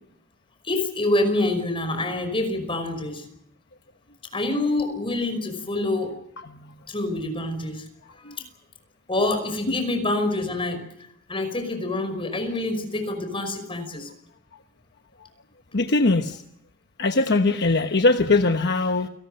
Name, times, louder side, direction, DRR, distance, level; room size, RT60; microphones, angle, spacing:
voice 1, 0.6-3.2 4.3-6.2 6.9-7.8 8.2-8.4 9.1-10.8 11.3-14.1, left 2 dB, 25° left, 8 dB, 5.4 m, -26 dB
voice 2, 6.4-6.8 8.2-8.3 9.7-9.8 15.7-16.4 17.0-19.1, left 3 dB, 60° left, 6 dB, 1.1 m, -21 dB
29.5 x 19.0 x 6.7 m, 0.79 s
head